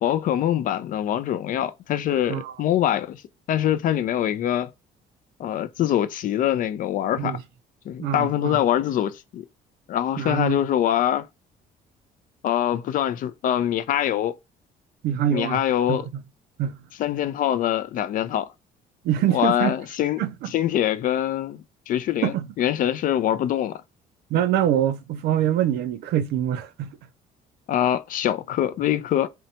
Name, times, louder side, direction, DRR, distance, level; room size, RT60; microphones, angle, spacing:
voice 1, 0.0-3.2 3.5-4.7 5.4-7.4 7.9-9.4 9.9-11.3 12.4-14.3 15.3-16.1 17.0-18.5 19.3-20.2 20.5-23.8 27.7-29.3, left 11 dB, 55° left, 0.4 m, -24 dB
voice 2, 8.0-8.6 10.2-10.6 15.0-15.6 15.9-16.0 16.6-16.8 19.0-19.8 20.2-20.5 22.2-22.5 24.3-27.0, right 10 dB, 75° right, 0.4 m, -24 dB
2.7 x 2.2 x 2.7 m
cardioid pair, 110°, 17 cm